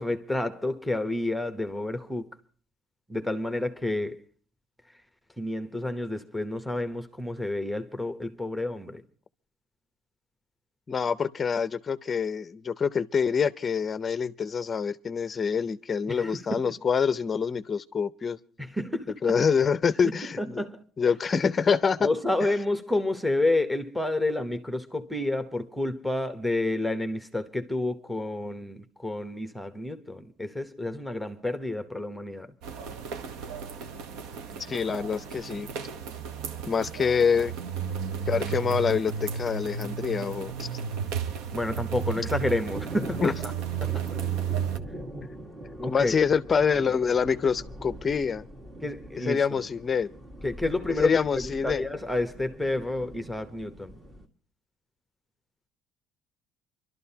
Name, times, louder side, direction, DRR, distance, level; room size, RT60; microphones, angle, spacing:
voice 1, 0.0-2.3 3.1-4.2 5.4-9.0 16.1-16.7 18.6-19.4 20.4-20.8 22.0-32.5 41.5-43.3 43.8-44.1 45.8-46.2 48.8-49.6 50.4-54.0, left 2 dB, ahead, 0.9 m, -30 dB
voice 2, 10.9-18.4 19.2-20.6 21.0-22.1 34.7-35.7 36.7-37.5 38.3-40.7 42.2-42.3 43.2-43.3 45.8-48.5 49.2-50.1 50.9-51.8, left 6 dB, 25° left, 0.6 m, -26 dB
sound 1, 32.6-44.8, right 7 dB, 80° right, 1.0 m, -33 dB
sound 2, 40.9-54.3, right 1 dB, 25° right, 1.8 m, -43 dB
27.5 x 12.5 x 2.8 m
cardioid pair, 135°, 0 cm